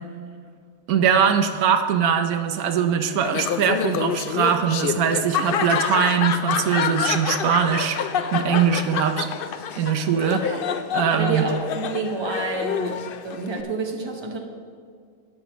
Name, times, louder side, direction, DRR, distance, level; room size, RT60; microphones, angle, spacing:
voice 1, 0.9-9.3 9.8-10.5 10.9-11.5, right 7 dB, 85° right, 7 dB, 1.2 m, -21 dB
Laughter, 3.2-13.6, left 7 dB, 90° left, 0.4 m, -27 dB
voice 2, 11.1-12.9 13.2-14.4, right 3 dB, 20° right, 1 dB, 1.0 m, -28 dB
19.0 x 6.4 x 3.1 m, 2.1 s
omnidirectional pair, 1.5 m